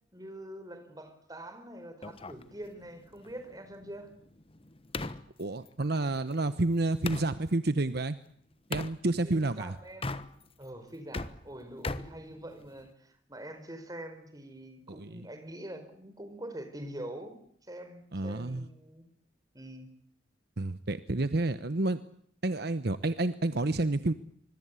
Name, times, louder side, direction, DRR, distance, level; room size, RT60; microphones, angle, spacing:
voice 1, 0.1-4.1 9.2-10.1 10.6-17.4 17.7-19.0 19.5-19.9, right 1 dB, 20° right, 8 dB, 4.6 m, -44 dB
sound 1, 2.0-7.3 8.7-9.0 9.9-10.6 10.9-12.9, left 2 dB, 30° left, 1.2 m, -40 dB
voice 2, 5.4-8.2 8.7-9.7 14.9-15.3 18.1-18.7 20.6-22.0 22.4-24.1, right 2 dB, 55° right, 12 dB, 1.0 m, -29 dB
25.0 x 22.5 x 8.3 m, 0.66 s
head